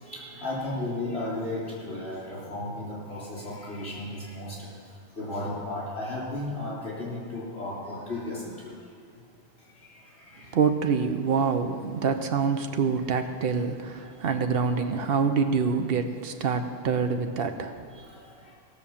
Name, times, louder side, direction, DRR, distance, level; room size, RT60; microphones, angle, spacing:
voice 1, 0.0-4.7 5.2-8.7 9.9-10.6 14.2-14.3 17.9-18.5, left 2 dB, 75° left, -5 dB, 3.9 m, -35 dB
voice 2, 10.5-17.7, right 5 dB, 65° right, 7 dB, 1.0 m, -26 dB
16.5 x 6.2 x 7.2 m, 2.4 s
omnidirectional pair, 1.1 m